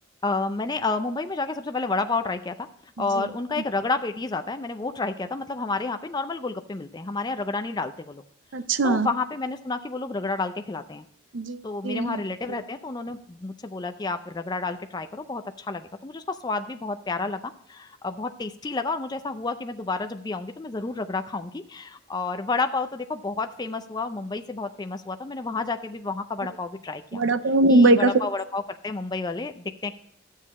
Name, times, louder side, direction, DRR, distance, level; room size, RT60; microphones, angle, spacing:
voice 1, 0.2-2.7 3.0-8.2 8.8-11.0 11.6-27.2 27.7-30.0, left 3 dB, 20° left, 0.4 m, -30 dB
voice 2, 8.5-9.1 11.3-12.2 27.1-28.1, right 2 dB, 70° right, 0.6 m, -20 dB
12.0 x 7.4 x 4.2 m
head